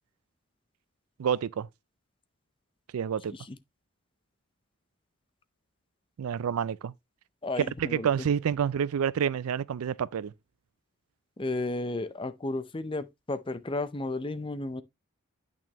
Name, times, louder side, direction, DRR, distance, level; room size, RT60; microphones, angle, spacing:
voice 1, 1.2-1.7 2.9-3.3 6.2-6.9 7.6-10.3, right 8 dB, 80° right, 0.4 m, -28 dB
voice 2, 7.4-8.1 11.4-14.8, left 2 dB, 25° left, 0.5 m, -33 dB
8.7 x 6.1 x 2.9 m
head